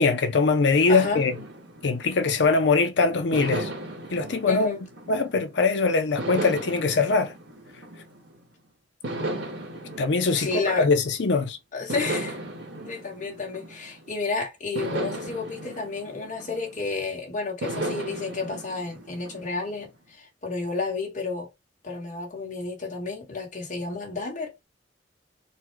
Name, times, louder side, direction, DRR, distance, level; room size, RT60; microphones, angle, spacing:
voice 1, 0.0-1.3 1.8-3.7 4.1-4.7 5.1-7.3 10.0-11.6, left 4 dB, 70° left, 0.5 m, -22 dB
voice 2, 0.9-1.2 4.5-4.8 10.3-10.9 11.7-12.4 12.8-21.5 21.8-24.5, left 3 dB, 45° left, 1.6 m, -31 dB
sound 1, 0.9-2.7 3.3-5.6 6.2-8.4 9.0-11.3 11.9-14.2 14.8-17.0 17.6-19.9, right 1 dB, 65° right, 1.4 m, -35 dB
4.1 x 2.2 x 4.5 m
head